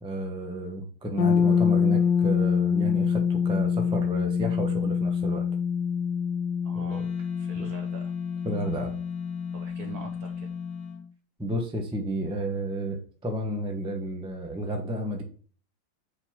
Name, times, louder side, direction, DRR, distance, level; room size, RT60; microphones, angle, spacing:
voice 1, 0.0-5.4 6.7-7.0 7.6-7.7 8.4-8.9 11.4-15.2, right 1 dB, 5° right, 4 dB, 0.5 m, -31 dB
sound 1, 1.2-11.0, left 7 dB, 65° left, 1.2 m, -26 dB
voice 2, 6.6-7.1 7.4-8.1 9.5-10.5, right 5 dB, 60° right, 5 dB, 1.0 m, -44 dB
Wind instrument woodwind instrument, 6.9-11.0, right 1 dB, 85° left, 1.7 m, -51 dB
4.9 x 4.8 x 6.0 m, 0.42 s
omnidirectional pair, 2.3 m